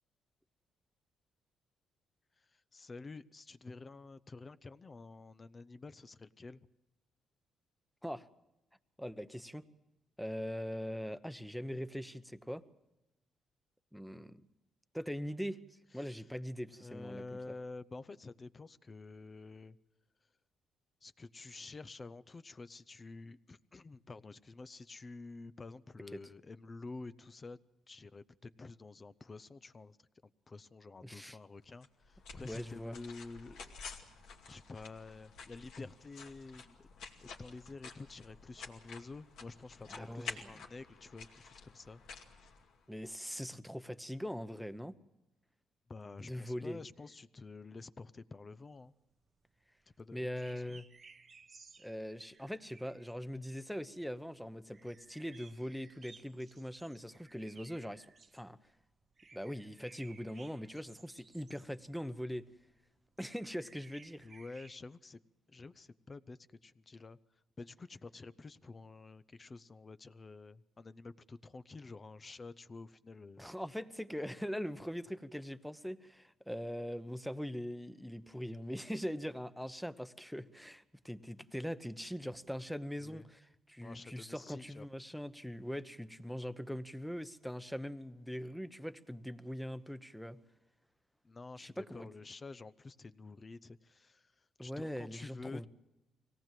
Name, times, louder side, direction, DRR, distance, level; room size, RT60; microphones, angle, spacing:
voice 1, 2.4-6.6 16.0-16.1 16.7-19.8 21.0-27.6 27.9-33.7 34.5-36.9 37.2-42.0 45.9-48.9 50.0-50.8 64.2-65.2 65.5-67.2 67.6-73.5 83.0-83.3 83.8-84.9 91.2-95.7, left 3 dB, 30° left, 14 dB, 0.7 m, -49 dB
voice 2, 9.0-9.6 10.2-12.6 13.9-14.4 14.9-15.6 15.9-17.2 31.0-31.4 32.5-32.9 39.9-40.5 42.9-44.9 46.2-46.8 50.1-50.8 51.8-58.6 59.3-62.5 63.2-64.3 73.4-83.4 83.7-90.4 91.6-92.1 94.6-95.7, equal, ahead, 12 dB, 1.0 m, -41 dB
sound 1, 31.8-43.1, left 5 dB, 80° left, 2.4 m, -51 dB
sound 2, 48.7-64.8, right 4 dB, 35° right, 0.9 m, -60 dB
24.0 x 18.0 x 7.6 m, 0.98 s
cardioid pair, 90°, 0 cm